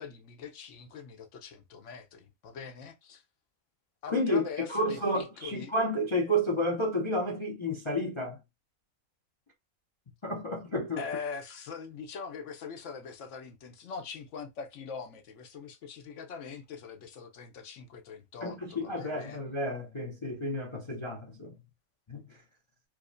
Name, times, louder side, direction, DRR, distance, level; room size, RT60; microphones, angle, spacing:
voice 1, 0.0-3.2 4.0-5.7 11.0-19.4, left 5 dB, 65° left, 0.9 m, -42 dB
voice 2, 4.1-8.4 10.2-11.0 18.4-21.5 22.1-22.4, equal, 45° left, 0.3 m, -31 dB
4.8 x 2.1 x 2.5 m
omnidirectional pair, 1.5 m